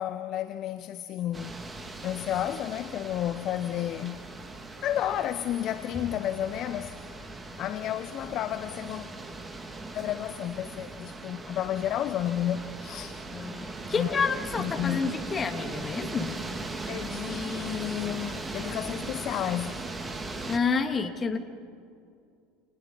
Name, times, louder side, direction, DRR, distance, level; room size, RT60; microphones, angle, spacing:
voice 1, 0.0-1.6 2.0-4.3 4.8-7.0 7.6-9.1 9.9-13.2 13.9-14.2 14.6-15.1 16.9-19.8, left 11 dB, 45° left, 0.8 m, -31 dB
sound 1, 1.3-20.6, right 2 dB, 15° right, 2.5 m, -39 dB
Bowed string instrument, 5.9-9.3, equal, 5° left, 2.0 m, -49 dB
voice 2, 13.3-16.4 20.5-21.4, left 5 dB, 25° left, 2.5 m, -29 dB
29.0 x 28.5 x 5.6 m
figure-of-eight pair, 70°, 0 cm